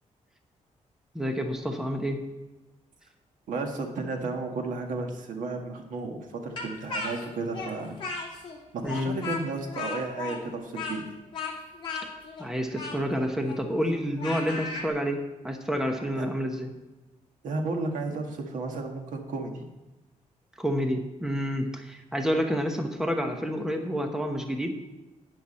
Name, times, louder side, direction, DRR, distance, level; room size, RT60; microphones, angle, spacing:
voice 1, 1.1-2.2 8.8-9.2 12.4-16.7 20.6-24.7, equal, 5° right, 4 dB, 1.0 m, -29 dB
voice 2, 3.5-8.0 8.7-11.0 16.2-16.3 17.4-19.7, right 3 dB, 85° right, 3 dB, 1.7 m, -33 dB
Speech, 6.6-8.6 8.8-14.9, left 4 dB, 40° left, 2.3 m, -36 dB
12.0 x 9.4 x 4.3 m, 1.1 s
wide cardioid pair, 175°, 13 cm